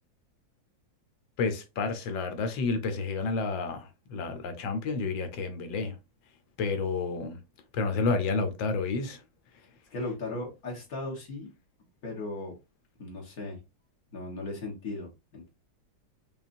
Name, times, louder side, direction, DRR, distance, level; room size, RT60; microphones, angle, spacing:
voice 1, 1.4-6.0 6.6-7.4 7.7-9.2, left 4 dB, 85° left, 1.5 m, -30 dB
voice 2, 9.9-11.5 12.0-12.6 13.0-13.6 14.1-15.5, left 2 dB, 55° left, 1.7 m, -37 dB
5.5 x 2.4 x 2.6 m
omnidirectional pair, 2.0 m